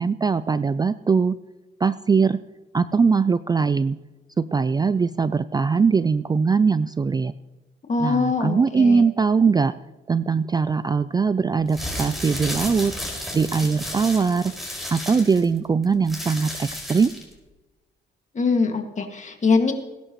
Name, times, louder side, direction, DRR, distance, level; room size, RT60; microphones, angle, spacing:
voice 1, 0.0-1.4 1.8-2.4 2.7-4.0 4.4-7.3 8.0-9.7 10.1-12.9 13.3-14.5 14.9-17.1, right 5 dB, 20° right, 15 dB, 0.3 m, -21 dB
voice 2, 7.9-9.1 18.3-19.7, left 4 dB, 35° left, 4 dB, 2.1 m, -22 dB
sound 1, 11.6-17.3, equal, ahead, 5.3 m, -33 dB
20.5 x 11.0 x 3.1 m, 1.1 s
cardioid pair, 90°, 20 cm